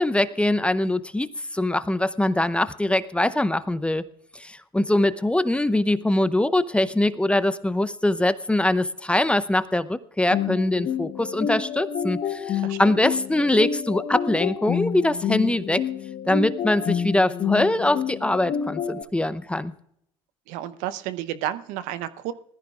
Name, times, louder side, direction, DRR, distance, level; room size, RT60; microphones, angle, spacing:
voice 1, 0.0-4.1 4.3-15.8 16.3-19.7, left 1 dB, 10° left, 14 dB, 0.7 m, -23 dB
sound 1, 10.3-19.0, left 8 dB, 50° left, 1.0 m, -29 dB
voice 2, 12.6-13.0 20.5-22.3, right 12 dB, 70° right, 14 dB, 0.8 m, -31 dB
20.0 x 14.5 x 2.4 m, 0.73 s
hypercardioid pair, 70°, 13 cm